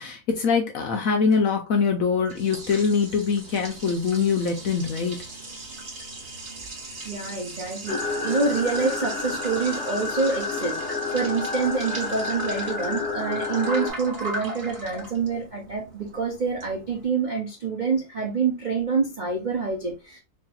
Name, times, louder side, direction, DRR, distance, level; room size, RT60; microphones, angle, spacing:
voice 1, 0.0-5.2, left 5 dB, 65° left, 0.9 m, -23 dB
Liquid, 1.9-17.1, right 2 dB, 45° right, 1.7 m, -39 dB
voice 2, 7.0-20.2, right 4 dB, 70° right, 0.4 m, -27 dB
sound 1, 7.9-13.9, left 3 dB, 45° left, 1.0 m, -30 dB
4.1 x 3.3 x 2.3 m
omnidirectional pair, 2.0 m